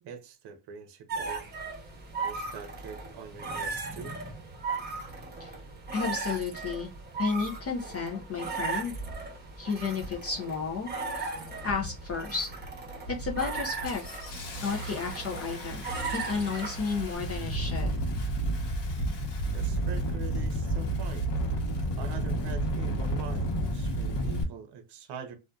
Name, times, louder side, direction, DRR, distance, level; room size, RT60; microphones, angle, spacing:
voice 1, 0.0-1.5 2.2-4.1 19.5-21.3 22.0-25.3, right 6 dB, 55° right, 0.7 m, -43 dB
sound 1, 1.1-17.2, right 4 dB, 20° right, 0.9 m, -37 dB
voice 2, 5.9-6.9 7.2-8.9 9.6-10.9 11.2-11.3 11.6-12.5 13.1-14.0 14.6-15.8 16.1-17.9, left 5 dB, 35° left, 0.4 m, -32 dB
Engine starting, 8.1-8.2 8.9-9.2 9.9-10.3 10.6-11.1 11.6-12.1 12.5-12.7 13.1-24.4, right 1 dB, 55° left, 1.0 m, -32 dB
2.5 x 2.3 x 2.2 m
cardioid pair, 115°, 48 cm